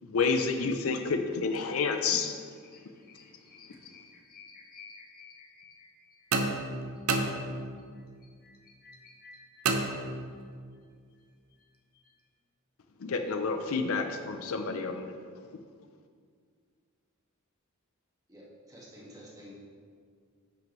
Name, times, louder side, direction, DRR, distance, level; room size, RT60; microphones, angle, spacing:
voice 1, 0.0-2.3 13.0-15.1, left 4 dB, 70° left, 6 dB, 0.5 m, -29 dB
voice 2, 2.6-10.4 10.7-10.8 11.1-11.2 11.5-11.7 11.9-12.1, left 5 dB, 45° left, 1 dB, 0.9 m, -56 dB
sound 1, 6.3-8.0 9.6-10.6, right 3 dB, 75° right, 0.7 m, -31 dB
voice 3, 18.3-19.5, equal, 15° right, -5 dB, 1.6 m, -50 dB
10.5 x 6.1 x 3.1 m, 2.1 s
head